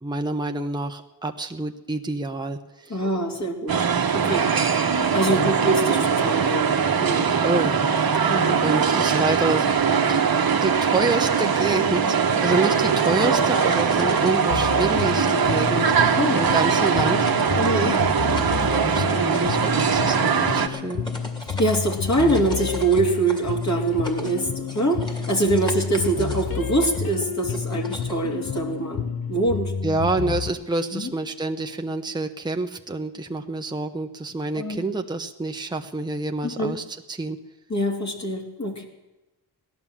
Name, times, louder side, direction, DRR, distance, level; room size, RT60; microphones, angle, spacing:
voice 1, 0.0-3.0 5.3-5.6 7.4-7.9 8.2-9.8 10.1-10.2 10.6-17.3 18.6-21.1 29.8-37.4, right 2 dB, 10° right, 4 dB, 0.9 m, -28 dB
voice 2, 2.9-3.7 4.1-4.5 5.1-7.3 8.3-8.6 16.2-16.5 17.6-18.0 21.4-29.0 29.3-29.7 30.9-31.1 34.5-34.8 36.4-36.8 37.7-38.8, right 2 dB, 40° left, 0 dB, 2.8 m, -24 dB
sound 1, 3.7-20.7, right 6 dB, 55° right, 1.3 m, -21 dB
sound 2, 11.8-28.8, equal, 10° left, 2.4 m, -40 dB
sound 3, 14.5-30.5, left 6 dB, 55° left, 0.9 m, -30 dB
16.5 x 11.5 x 7.4 m, 1.1 s
cardioid pair, 80°, 43 cm